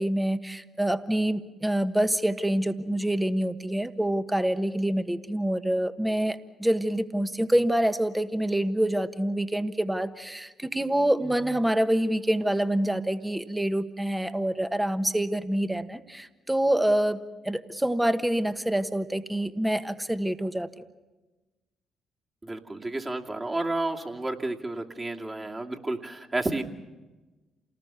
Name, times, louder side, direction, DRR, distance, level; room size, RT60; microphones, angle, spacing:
voice 1, 0.0-17.2 17.4-20.7, right 1 dB, 10° right, 10 dB, 1.3 m, -26 dB
voice 2, 22.4-26.6, right 2 dB, 25° right, 1 dB, 2.5 m, -31 dB
28.5 x 19.0 x 7.0 m, 1.2 s
hypercardioid pair, 50°, 0 cm